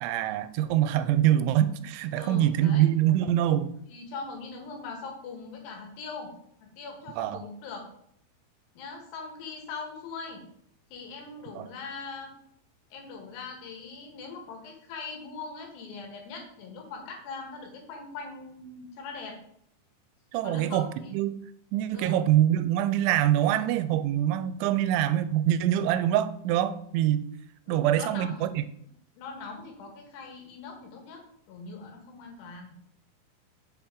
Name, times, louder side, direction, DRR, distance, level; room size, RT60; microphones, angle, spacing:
voice 1, 0.0-3.7 7.2-7.4 11.6-11.7 20.3-21.4 21.7-27.3 27.7-28.6, right 12 dB, 85° right, 12 dB, 2.9 m, -24 dB
voice 2, 2.2-2.9 3.9-6.3 6.6-7.9 8.8-10.4 10.9-12.3 12.9-19.4 20.4-21.1 21.9-22.2 27.7-28.5 29.2-31.2 31.5-32.8, left 4 dB, 70° left, 2 dB, 3.4 m, -41 dB
7.0 x 7.0 x 3.7 m, 0.69 s
omnidirectional pair, 5.2 m